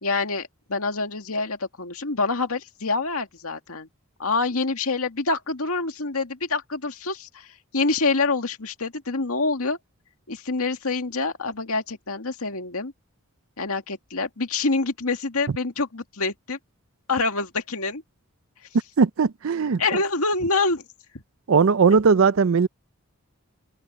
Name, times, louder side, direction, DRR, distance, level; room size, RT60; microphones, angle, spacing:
voice 1, 0.0-3.9 4.2-7.5 7.7-9.8 10.3-12.9 13.6-16.6 17.1-18.0 19.8-20.8, left 3 dB, 75° left, 2.1 m, -26 dB
voice 2, 19.0-19.8 21.5-22.7, right 5 dB, 60° right, 0.5 m, -18 dB
open air
head